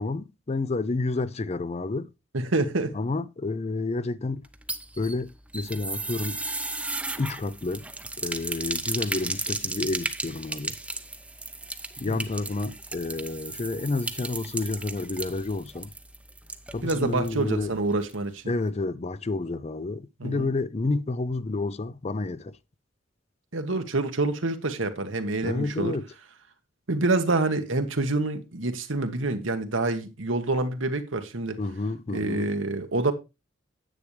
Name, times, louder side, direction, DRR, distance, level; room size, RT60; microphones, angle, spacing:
voice 1, 0.0-2.1 2.9-4.5 5.0-6.4 7.2-7.9 8.2-10.7 12.0-15.9 16.7-17.7 18.5-22.6 25.4-26.1 31.6-32.5, left 3 dB, 35° left, 0.5 m, -30 dB
voice 2, 2.3-2.9 12.0-12.2 16.8-18.4 20.2-20.5 23.5-26.0 26.9-31.6 32.1-33.1, right 2 dB, 85° right, 1.4 m, -27 dB
sound 1, 4.4-17.4 17.7-17.8 18.1-18.2, right 2 dB, 5° right, 0.7 m, -35 dB
9.9 x 8.5 x 3.3 m
head